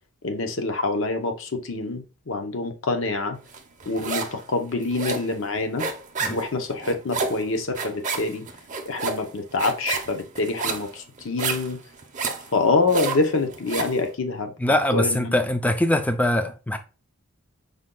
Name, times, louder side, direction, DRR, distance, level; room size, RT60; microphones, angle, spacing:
voice 1, 0.2-3.4 3.9-5.8 6.3-8.4 8.9-11.8 12.5-14.5 14.9-15.4, left 3 dB, 60° left, 0.7 m, -26 dB
sound 1, 3.5-4.4 4.7-14.0, right 4 dB, 35° right, 0.6 m, -30 dB
voice 2, 14.6-16.8, left 1 dB, 5° left, 0.3 m, -22 dB
5.1 x 2.2 x 3.7 m
head